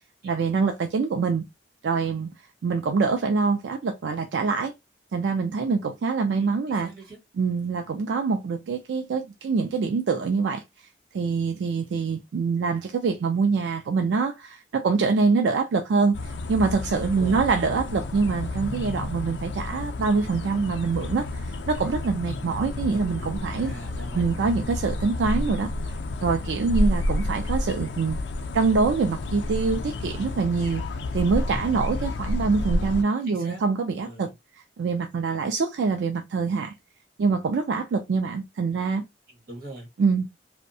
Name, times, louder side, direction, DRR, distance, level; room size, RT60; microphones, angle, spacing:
voice 1, 0.2-1.4 1.8-2.3 2.6-4.7 5.1-6.9 7.4-10.6 11.1-23.7 24.1-25.7 26.2-28.2 28.5-30.8 31.1-34.3 34.8-36.7 37.2-39.0 40.0-40.3, right 4 dB, 90° right, 0.4 m, -25 dB
voice 2, 6.4-7.2 17.0-17.5 23.6-24.6 33.2-33.6 34.0-34.3 39.3-39.9, right 1 dB, 55° right, 1.3 m, -42 dB
sound 1, 16.1-33.0, left 1 dB, 85° left, 0.4 m, -30 dB
2.6 x 2.1 x 2.6 m
head